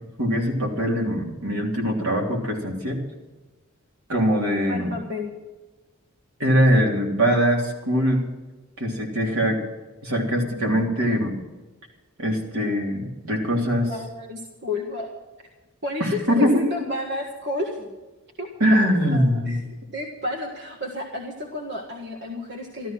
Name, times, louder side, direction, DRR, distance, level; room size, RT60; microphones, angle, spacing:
voice 1, 0.2-3.0 4.1-4.9 6.4-8.2 8.8-9.6 10.0-11.4 12.2-13.9 16.0-16.6 18.6-19.6, equal, 75° right, 0 dB, 3.4 m, -22 dB
voice 2, 4.7-5.3 13.9-15.1 15.8-17.9 18.4-22.9, left 2 dB, 50° right, 1 dB, 1.7 m, -31 dB
13.5 x 13.0 x 6.1 m, 1.2 s
head